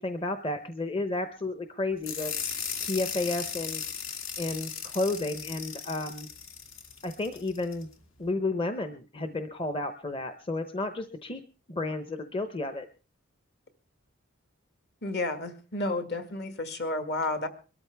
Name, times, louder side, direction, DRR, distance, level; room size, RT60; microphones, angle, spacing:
voice 1, 0.0-2.3 2.8-3.8 4.4-6.3 7.0-7.9 8.2-11.4 11.7-12.9, left 2 dB, 25° left, 8 dB, 0.8 m, -32 dB
sound 1, 2.0-7.8, left 7 dB, 70° left, 2.2 m, -37 dB
voice 2, 15.0-17.5, left 2 dB, 55° left, 8 dB, 1.8 m, -31 dB
22.5 x 13.0 x 3.4 m, 0.34 s
head